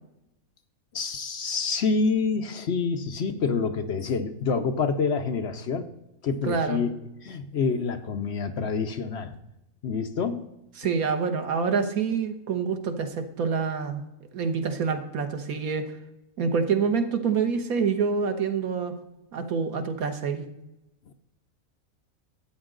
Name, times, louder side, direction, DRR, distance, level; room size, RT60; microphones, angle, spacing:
voice 1, 0.9-5.9 6.2-6.9 7.2-9.3 9.8-10.5, left 5 dB, 55° left, 8 dB, 0.9 m, -27 dB
voice 2, 6.4-6.8 10.8-14.0 14.3-15.8 16.4-18.9 19.3-20.4, right 5 dB, 80° right, 7 dB, 1.5 m, -26 dB
13.0 x 8.8 x 3.8 m, 0.92 s
omnidirectional pair, 1.5 m